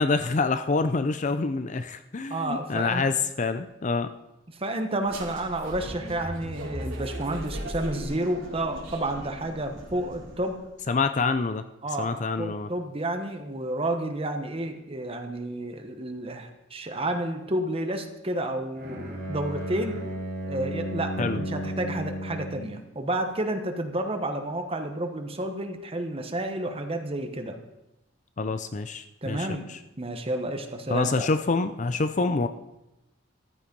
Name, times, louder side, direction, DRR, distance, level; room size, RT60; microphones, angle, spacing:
voice 1, 0.0-4.1 10.9-11.6 12.0-12.7 21.2-21.4 28.4-29.8 30.9-32.5, left 3 dB, 40° left, 10 dB, 0.5 m, -26 dB
voice 2, 2.3-3.0 4.6-10.6 11.8-20.0 20.4-27.6 29.2-29.7 30.0-31.3, right 1 dB, 30° right, 6 dB, 1.1 m, -30 dB
sound 1, 5.0-10.6, equal, 80° right, 3.5 m, -38 dB
Bowed string instrument, 18.7-22.8, right 1 dB, 55° right, 3.6 m, -34 dB
14.5 x 11.5 x 5.3 m, 0.94 s
head